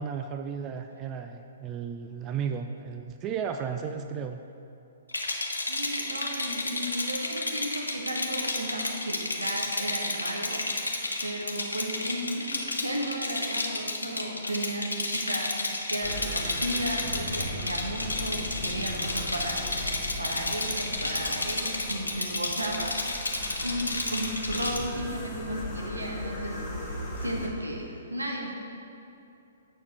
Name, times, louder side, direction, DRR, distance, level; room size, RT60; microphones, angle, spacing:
voice 1, 0.0-4.4, right 7 dB, 25° right, 6 dB, 0.4 m, -34 dB
Rattle, 5.1-24.8, left 2 dB, 85° left, 0.9 m, -31 dB
voice 2, 5.7-23.2 23.6-28.5, right 1 dB, 90° right, 0 dB, 1.3 m, -34 dB
sound 1, 16.0-27.5, left 1 dB, 15° left, 1.7 m, -38 dB
7.2 x 4.7 x 6.8 m, 2.7 s
figure-of-eight pair, 120°, 0 cm